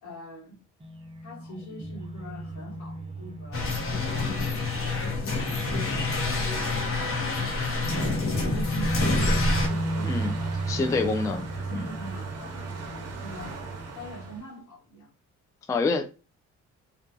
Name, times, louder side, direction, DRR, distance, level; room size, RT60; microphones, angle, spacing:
voice 1, 0.0-0.6 1.2-3.7 4.0-7.6 7.9-10.6 10.9-11.4 11.6-13.5 13.9-15.1, right 1 dB, 75° left, 1.2 m, -44 dB
sound 1, 0.8-6.2 6.5-6.6 7.8-14.4, right 1 dB, 20° right, 0.7 m, -34 dB
sound 2, 3.5-9.7, left 3 dB, 45° left, 0.8 m, -27 dB
Waves surf, 9.4-14.5, right 4 dB, 55° right, 0.8 m, -40 dB
voice 2, 10.0-10.4 10.7-11.9 15.7-16.1, left 3 dB, 10° left, 0.3 m, -27 dB
2.6 x 2.2 x 2.4 m
cardioid pair, 90°, 30 cm